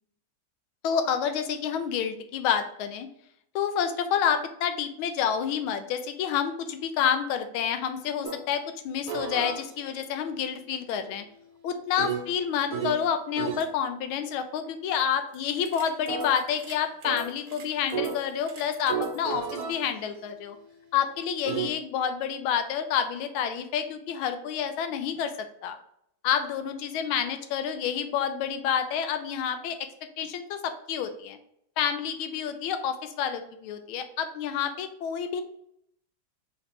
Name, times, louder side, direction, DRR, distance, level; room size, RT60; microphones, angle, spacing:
voice 1, 0.8-3.1 3.5-11.2 11.6-20.6 20.9-25.8 26.2-29.8 30.2-31.4 31.8-35.4, left 8 dB, 85° left, 8 dB, 1.4 m, -29 dB
sound 1, 8.2-8.4 9.1-13.1 13.4-13.7 15.3-21.7, right 6 dB, 65° right, 1.0 m, -35 dB
3.8 x 3.1 x 3.3 m, 0.73 s
omnidirectional pair, 2.2 m